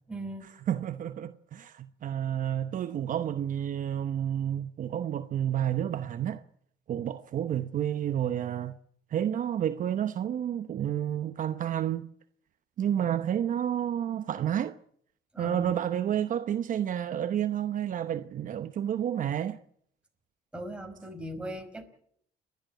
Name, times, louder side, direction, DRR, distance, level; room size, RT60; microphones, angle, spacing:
voice 1, 0.1-0.5 15.3-15.8 20.5-21.8, equal, 5° right, 4.9 m, -39 dB
voice 2, 0.7-6.4 6.9-8.7 9.1-12.1 12.8-14.7 15.4-19.6, right 10 dB, 50° right, 0.9 m, -30 dB
29.5 x 12.0 x 8.9 m
cardioid pair, 110°, 17 cm